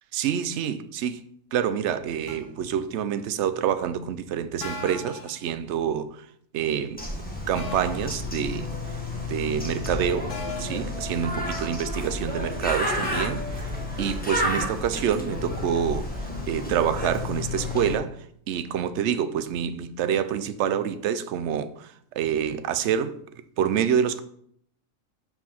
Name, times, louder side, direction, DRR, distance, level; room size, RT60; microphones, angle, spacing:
voice 1, 0.1-1.2 1.5-6.3 6.5-7.0 7.5-8.7 9.3-10.3 10.6-13.7 14.0-16.1 16.5-18.2 18.5-23.2 23.6-24.2, right 8 dB, 65° right, 0.7 m, -27 dB
sound 1, 2.3-2.6 4.6-5.4 7.6-8.1 10.3-10.9 13.0-13.3, left 3 dB, 75° left, 1.5 m, -37 dB
Bird, 7.0-18.0, left 1 dB, 5° left, 1.2 m, -31 dB
5.9 x 4.8 x 5.6 m
omnidirectional pair, 1.7 m